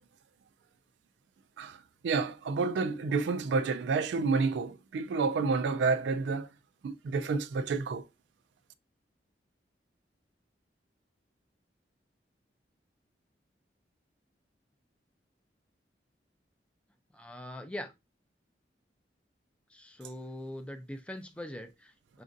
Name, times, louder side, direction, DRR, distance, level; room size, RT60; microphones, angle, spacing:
voice 1, 1.6-6.5 6.8-8.0, right 4 dB, 85° right, 0.3 m, -29 dB
voice 2, 17.1-17.9 19.7-22.2, left 1 dB, 5° left, 0.4 m, -42 dB
6.0 x 2.5 x 2.5 m
head